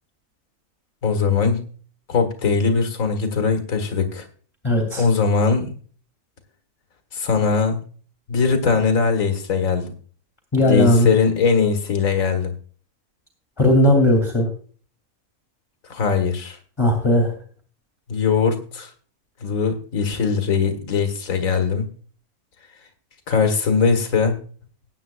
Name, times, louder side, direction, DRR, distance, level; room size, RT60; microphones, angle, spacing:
voice 1, 1.0-1.6 2.1-4.3 5.0-5.7 7.1-7.8 8.3-9.9 10.6-12.5 15.9-16.6 18.1-18.9 19.4-21.9 23.3-24.4, left 5 dB, 65° left, 6 dB, 2.0 m, -20 dB
voice 2, 4.6-5.0 10.5-11.1 13.6-14.5 16.8-17.3, left 1 dB, 20° left, 3 dB, 2.6 m, -17 dB
19.5 x 8.9 x 2.4 m, 0.43 s
omnidirectional pair, 1.5 m